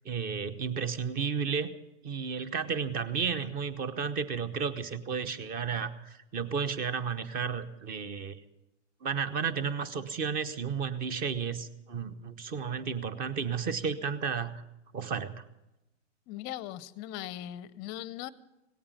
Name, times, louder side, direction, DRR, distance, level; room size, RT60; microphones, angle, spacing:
voice 1, 0.0-1.7 2.0-8.4 9.0-14.6 14.9-15.4, right 6 dB, 25° right, 14 dB, 0.9 m, -33 dB
voice 2, 16.3-18.3, left 13 dB, 30° left, 18 dB, 0.6 m, -39 dB
18.0 x 8.7 x 9.2 m, 0.94 s
hypercardioid pair, 130°, 36 cm